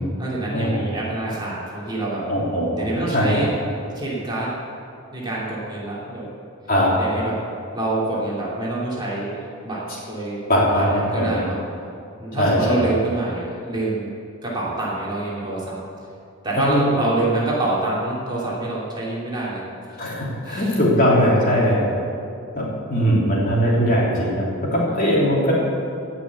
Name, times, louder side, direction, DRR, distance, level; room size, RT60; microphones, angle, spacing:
voice 1, 0.2-2.3 2.7-3.5 3.9-4.5 5.1-6.3 7.0-7.4 7.7-10.4 10.7-11.6 12.2-14.1 14.4-15.8 16.4-19.6 20.4-20.7 21.4-21.8 24.9-25.0, right 2 dB, 20° right, -6 dB, 2.9 m, -26 dB
voice 2, 2.3-3.4 6.7-6.9 10.5-11.4 12.3-12.9 16.5-16.9 20.0-21.8 22.5-25.5, equal, 40° left, -5 dB, 3.2 m, -20 dB
17.5 x 6.3 x 8.3 m, 2.5 s
head